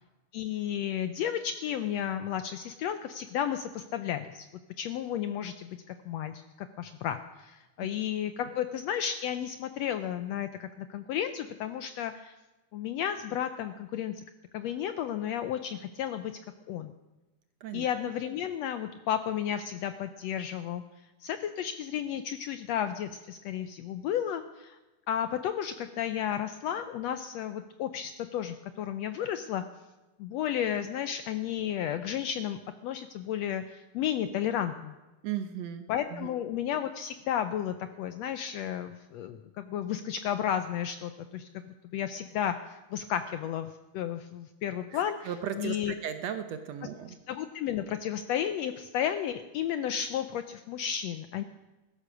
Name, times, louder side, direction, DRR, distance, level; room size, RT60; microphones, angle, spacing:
voice 1, 0.3-4.5 4.8-12.4 12.7-14.2 14.5-16.4 16.7-16.9 17.7-20.8 21.2-24.8 25.1-29.6 30.2-35.0 35.9-41.5 41.9-45.3 45.6-45.9 47.3-51.4, left 10 dB, 85° left, 10 dB, 1.5 m, -33 dB
voice 2, 17.6-17.9 35.2-36.3 44.9-47.2, right 9 dB, 70° right, 9 dB, 1.7 m, -37 dB
16.5 x 13.5 x 6.2 m, 1.1 s
omnidirectional pair, 3.7 m